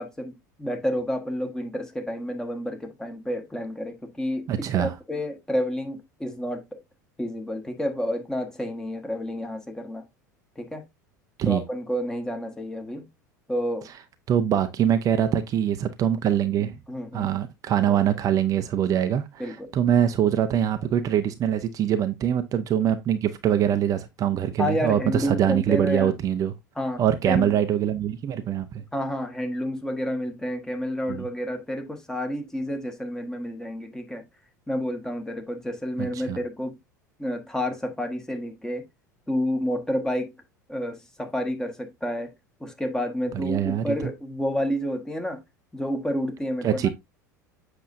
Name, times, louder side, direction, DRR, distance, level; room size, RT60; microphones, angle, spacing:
voice 1, 0.0-6.8 7.2-10.0 10.5-10.8 11.4-13.1 13.5-13.9 16.9-17.3 19.4-19.7 24.6-26.1 26.8-27.6 28.9-34.2 34.7-36.8 37.2-38.8 39.3-40.3 40.7-42.3 42.6-45.4 45.7-46.9, equal, 5° left, 1.5 m, -30 dB
voice 2, 4.5-4.9 11.4-11.6 14.3-16.7 17.1-26.5 27.0-28.8 31.1-31.3 36.0-36.4 43.3-43.9 46.6-46.9, right 10 dB, 35° right, 0.8 m, -23 dB
7.8 x 6.3 x 2.6 m
figure-of-eight pair, 75°, 10 cm